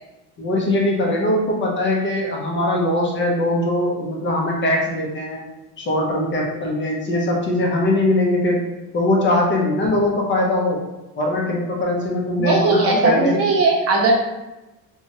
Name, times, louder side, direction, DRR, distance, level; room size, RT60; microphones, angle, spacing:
voice 1, 0.4-5.4 5.8-8.6 8.9-10.8 11.2-13.4, left 1 dB, 35° left, -2 dB, 0.6 m, -21 dB
voice 2, 12.4-14.1, right 3 dB, 45° right, -1 dB, 0.7 m, -18 dB
2.8 x 2.3 x 2.7 m, 0.99 s
cardioid pair, 115°, 35 cm